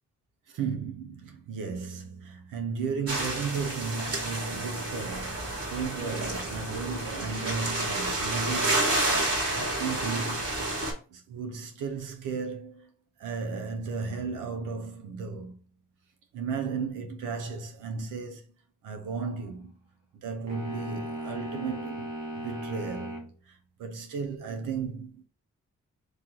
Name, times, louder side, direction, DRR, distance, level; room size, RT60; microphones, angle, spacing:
voice 1, 0.5-8.9 9.4-10.5 11.1-12.9 13.2-15.6 16.3-18.4 18.8-19.8 20.2-22.1 22.4-23.2 23.5-25.2, right 5 dB, 90° right, 0.7 m, -35 dB
sound 1, 3.1-10.9, right 2 dB, 50° right, 1.8 m, -30 dB
sound 2, 20.5-23.3, right 1 dB, 65° right, 1.3 m, -36 dB
3.2 x 2.9 x 3.7 m
supercardioid pair, 50°, 31 cm